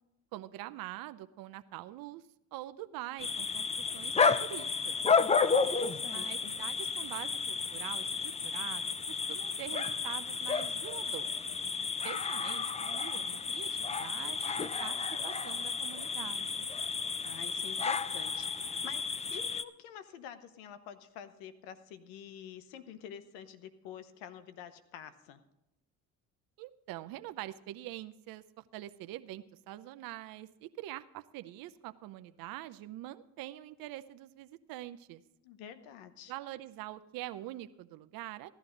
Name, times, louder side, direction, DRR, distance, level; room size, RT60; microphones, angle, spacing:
voice 1, 0.3-2.2 2.5-5.0 6.0-11.4 12.0-16.7 26.6-35.2 36.3-38.5, right 15 dB, 70° right, 12 dB, 0.7 m, -45 dB
sound 1, 3.2-19.6, left 5 dB, 20° left, 0.5 m, -32 dB
voice 2, 5.5-6.5 17.2-25.4 35.4-36.3, left 8 dB, 90° left, 12 dB, 1.0 m, -48 dB
15.0 x 11.5 x 3.9 m, 0.89 s
supercardioid pair, 90°, 36 cm